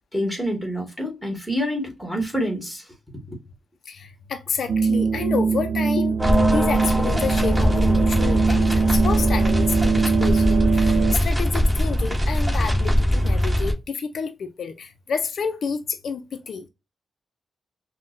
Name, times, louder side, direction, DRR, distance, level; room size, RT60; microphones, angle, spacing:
voice 1, 0.1-2.9 3.3-3.4, equal, ahead, 1.4 m, -27 dB
voice 2, 3.9-6.2 6.5-16.7, left 5 dB, 65° left, 0.4 m, -29 dB
sound 1, 4.7-11.2, right 5 dB, 80° right, 0.3 m, -22 dB
sound 2, 6.2-13.7, equal, 15° right, 1.9 m, -21 dB
5.6 x 2.1 x 2.5 m
wide cardioid pair, 135°, 0 cm